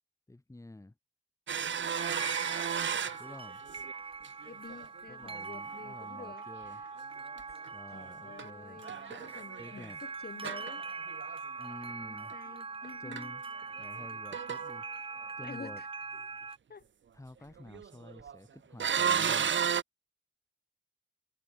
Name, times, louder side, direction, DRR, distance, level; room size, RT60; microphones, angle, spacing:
voice 1, 0.3-0.9 3.2-3.6 5.1-6.8 7.7-8.8 9.6-10.0 11.6-12.3 13.0-13.4 13.8-14.9 15.4-15.8 17.1-19.7, left 2 dB, 15° left, 4.4 m, -49 dB
sound 1, 1.5-4.0 4.2-4.9 5.2-5.4 7.4-8.5 8.8-9.9 10.4-11.4 12.3-12.4 12.8-12.9 13.1-13.3 13.6-14.0 14.3-14.8 17.6-18.4 18.8-19.8, right 7 dB, 80° right, 1.1 m, -33 dB
sound 2, 1.9-16.6, right 4 dB, 30° right, 0.6 m, -42 dB
voice 2, 4.4-6.5 7.9-10.9 12.0-13.3 15.4-15.9 16.7-16.8, left 5 dB, 55° left, 7.7 m, -49 dB
wide cardioid pair, 175°, 19 cm